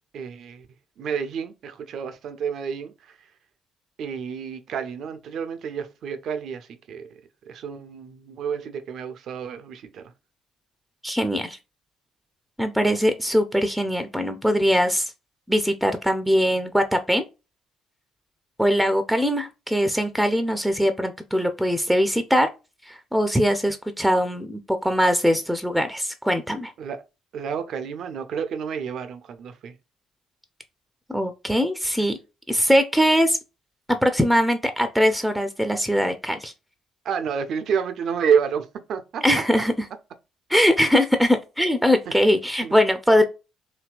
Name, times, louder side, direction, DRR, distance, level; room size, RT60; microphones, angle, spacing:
voice 1, 0.1-0.7 1.0-3.2 4.0-7.1 7.5-10.1 26.8-27.0 27.3-29.7 37.0-39.4 42.1-42.2 42.6-42.7, right 7 dB, 55° right, 0.5 m, -29 dB
voice 2, 11.0-11.6 12.6-15.1 15.5-17.2 18.6-22.5 22.9-26.7 31.1-32.2 32.5-33.4 34.0-36.5 39.2-39.7 40.5-43.2, equal, ahead, 0.5 m, -21 dB
3.2 x 2.7 x 2.4 m
figure-of-eight pair, 45°, 0 cm